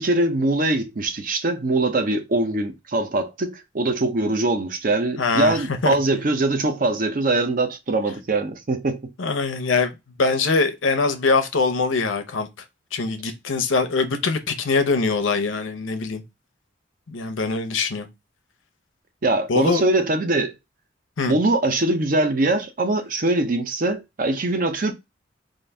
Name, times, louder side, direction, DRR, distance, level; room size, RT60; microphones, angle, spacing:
voice 1, 0.0-9.1 19.2-20.5 21.3-24.9, right 2 dB, 45° right, 0.6 m, -22 dB
voice 2, 5.2-6.0 9.2-12.5 12.9-16.2 17.1-18.1 19.5-19.8 21.2-21.3, left 4 dB, 85° left, 0.6 m, -23 dB
3.8 x 2.6 x 3.3 m
head